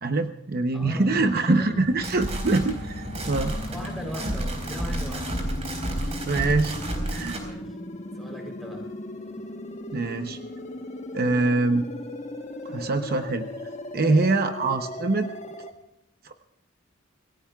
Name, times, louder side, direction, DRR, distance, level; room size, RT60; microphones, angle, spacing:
voice 1, 0.0-3.5 4.2-4.3 6.2-6.8 7.1-7.4 9.9-10.4 11.1-11.9 12.6-13.5 13.9-15.3 16.2-16.3, right 3 dB, 50° right, 7 dB, 0.8 m, -24 dB
voice 2, 0.7-1.8 3.4-5.4 7.4-7.8 8.2-8.9 14.0-14.2, equal, ahead, 2 dB, 3.7 m, -40 dB
sound 1, 0.8-15.7, left 1 dB, 35° left, 1.3 m, -37 dB
sound 2, 1.8-7.5, right 1 dB, 35° right, 4.4 m, -31 dB
26.5 x 17.5 x 2.4 m, 0.86 s
head